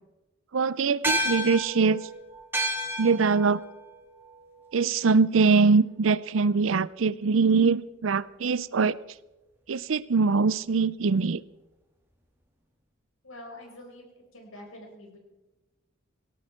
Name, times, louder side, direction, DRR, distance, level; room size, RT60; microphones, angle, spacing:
voice 1, 0.5-2.0 3.0-3.6 4.7-8.9 9.7-11.4, right 4 dB, 75° right, 19 dB, 0.5 m, -23 dB
sound 1, 1.0-5.7, equal, 10° right, 2.6 m, -32 dB
voice 2, 13.2-14.0 14.3-15.2, left 1 dB, 90° left, 2 dB, 5.1 m, -45 dB
18.0 x 17.5 x 4.5 m, 1.1 s
head